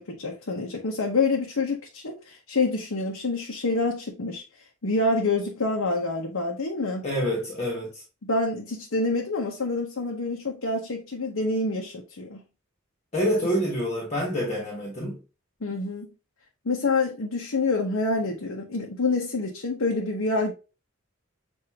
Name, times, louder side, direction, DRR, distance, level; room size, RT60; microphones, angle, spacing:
voice 1, 0.0-4.4 4.8-7.0 8.2-12.4 15.6-16.1 16.6-20.5, left 3 dB, 90° left, 0.8 m, -27 dB
voice 2, 7.0-8.0 13.1-15.2, equal, 35° left, 1.3 m, -27 dB
6.7 x 2.6 x 2.8 m
head